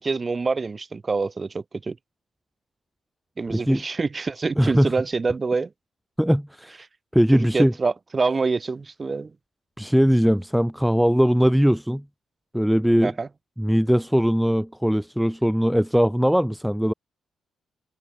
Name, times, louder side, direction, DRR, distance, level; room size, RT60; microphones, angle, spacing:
voice 1, 0.0-2.0 3.4-5.7 7.3-9.3 13.0-13.3, right 4 dB, 30° right, 2.3 m, -26 dB
voice 2, 3.5-3.8 4.6-4.9 6.2-6.8 7.1-7.7 9.8-12.0 12.5-13.1 13.6-16.9, equal, ahead, 0.4 m, -20 dB
cardioid pair, 110°, 0 cm